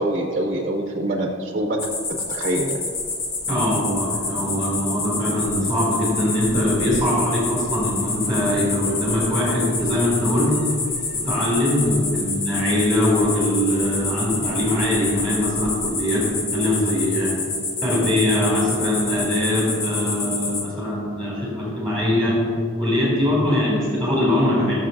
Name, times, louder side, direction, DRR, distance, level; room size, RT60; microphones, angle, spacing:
voice 1, 0.0-2.8, right 1 dB, 40° right, 3 dB, 0.6 m, -25 dB
sound 1, 1.8-20.6, left 3 dB, 70° left, 1.4 m, -28 dB
voice 2, 3.5-10.6 11.1-17.3 17.8-22.4 22.8-24.7, left 1 dB, 5° left, -7 dB, 2.3 m, -22 dB
17.5 x 6.6 x 2.6 m, 2.4 s
head